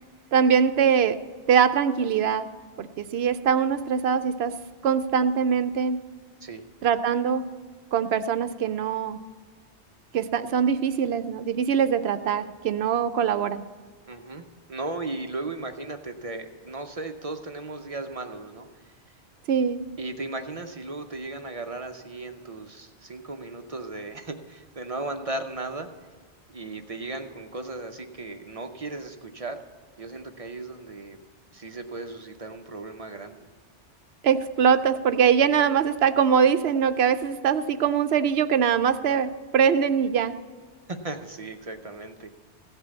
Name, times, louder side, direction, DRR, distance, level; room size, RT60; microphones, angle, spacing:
voice 1, 0.3-1.2 1.5-2.5 2.8-4.5 4.8-6.0 6.8-7.4 7.9-9.2 10.1-13.6 19.5-19.8 34.2-40.3, right 7 dB, 70° right, 11 dB, 0.8 m, -22 dB
voice 2, 14.1-18.9 20.0-25.9 26.5-29.6 30.0-31.2 31.5-33.5 40.9-42.4, right 2 dB, 35° right, 6 dB, 0.7 m, -36 dB
15.5 x 5.5 x 8.1 m, 1.5 s
omnidirectional pair, 1.1 m